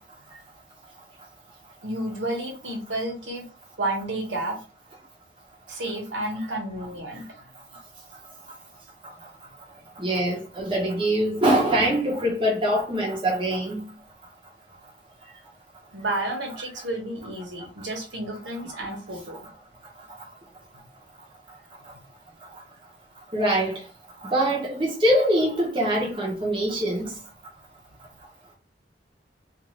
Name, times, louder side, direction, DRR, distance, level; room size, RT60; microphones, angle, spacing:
voice 1, 1.8-3.4 3.8-4.6 5.7-7.4 10.7-10.8 15.9-19.4, right 1 dB, 85° right, 1.1 m, -31 dB
voice 2, 10.0-13.8 23.3-23.8 24.2-27.1, right 1 dB, 30° right, 0.8 m, -23 dB
2.5 x 2.5 x 3.1 m
head